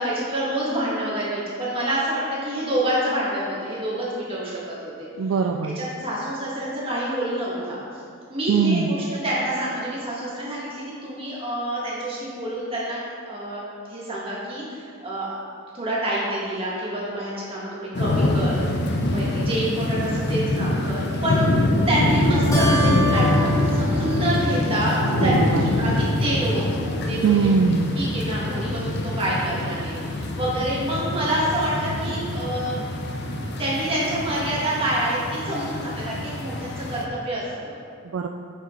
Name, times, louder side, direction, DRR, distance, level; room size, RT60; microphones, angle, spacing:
voice 1, 0.0-5.1 5.6-7.8 8.3-13.0 13.3-15.3 15.7-18.6 19.1-27.5 27.9-32.8 33.6-37.7, right 1 dB, 25° right, -6 dB, 1.8 m, -27 dB
voice 2, 5.2-5.8 8.5-9.0 25.2-25.6 27.2-28.0 38.1-38.3, right 5 dB, 60° right, 3 dB, 0.3 m, -21 dB
sound 1, 17.9-37.0, left 1 dB, 50° left, 0.6 m, -25 dB
Keyboard (musical), 22.5-25.4, left 1 dB, 15° left, 0.9 m, -29 dB
7.3 x 7.1 x 3.9 m, 2.4 s
head